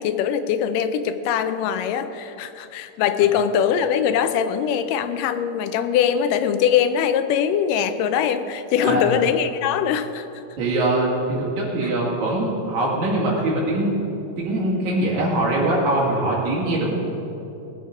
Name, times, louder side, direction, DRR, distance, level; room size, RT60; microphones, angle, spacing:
voice 1, 0.0-10.4 11.8-11.9, left 8 dB, 80° left, 10 dB, 2.2 m, -22 dB
voice 2, 8.8-9.1 10.6-13.9 14.4-16.9, right 1 dB, 60° right, -5 dB, 3.5 m, -22 dB
18.0 x 8.1 x 5.1 m, 2.9 s
omnidirectional pair, 3.8 m